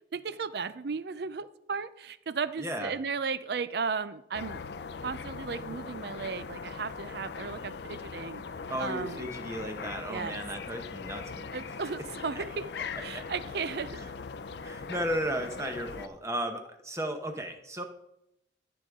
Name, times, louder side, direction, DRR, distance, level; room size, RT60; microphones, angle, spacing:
voice 1, 0.1-4.6 5.0-8.4 8.8-9.3 10.1-10.4 11.5-12.7 13.0-14.0, right 5 dB, 55° right, 15 dB, 0.5 m, -35 dB
voice 2, 2.6-2.9 8.7-11.5 12.4-12.5 13.1-13.2 13.9-14.1 14.6-17.8, equal, 15° right, 5 dB, 0.9 m, -35 dB
sound 1, 4.3-16.1, left 5 dB, 60° left, 0.5 m, -40 dB
13.5 x 6.9 x 3.6 m, 0.82 s
head